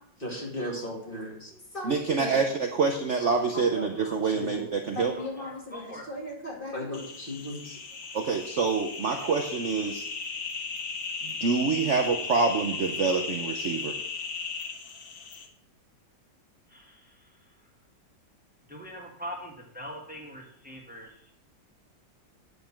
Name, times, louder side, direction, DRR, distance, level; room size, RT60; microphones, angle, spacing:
voice 1, 0.2-1.5 1.7-2.4 3.7-3.8 4.3-4.7 4.9-7.7, left 1 dB, 30° left, -1 dB, 2.5 m, -36 dB
voice 2, 1.8-5.2 8.1-10.0 11.2-13.9, right 4 dB, 50° right, 3 dB, 1.0 m, -26 dB
voice 3, 5.1-6.1 16.7-17.0 18.7-21.1, equal, 5° right, 0 dB, 1.8 m, -42 dB
sound 1, 6.9-15.5, left 5 dB, 55° left, 1.6 m, -36 dB
9.3 x 5.3 x 7.4 m, 0.67 s
omnidirectional pair, 2.0 m